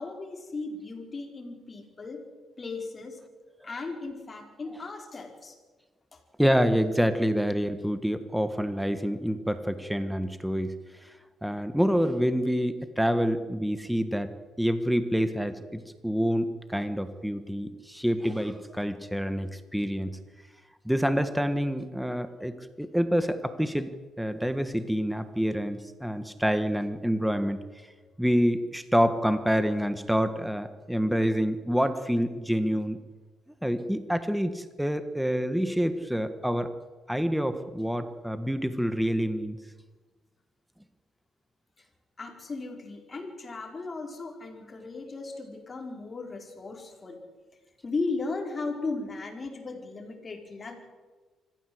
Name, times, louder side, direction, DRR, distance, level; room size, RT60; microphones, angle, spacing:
voice 1, 0.0-2.2 2.6-3.2 3.6-5.6 6.1-6.2 42.2-47.2 47.8-50.8, left 3 dB, 35° left, 3 dB, 4.8 m, -36 dB
voice 2, 6.4-10.7 11.0-11.1 11.4-14.3 14.6-20.1 20.9-23.9 24.2-27.6 28.2-33.0 33.6-36.7 37.1-39.6, equal, ahead, 10 dB, 1.6 m, -27 dB
25.0 x 15.0 x 8.0 m, 1.3 s
cardioid pair, 90°, 0 cm